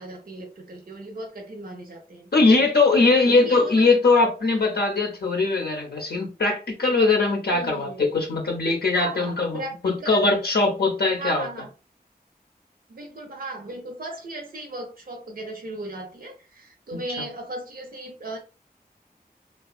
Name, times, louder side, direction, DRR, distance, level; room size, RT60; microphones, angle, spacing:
voice 1, 0.0-3.8 7.5-8.0 9.0-10.4 11.1-11.7 12.9-18.4, right 2 dB, 60° right, 2 dB, 0.5 m, -37 dB
voice 2, 2.3-11.5 16.9-17.0, left 3 dB, 80° left, 0 dB, 0.5 m, -21 dB
2.4 x 2.3 x 2.4 m, 0.33 s
wide cardioid pair, 45°, 17 cm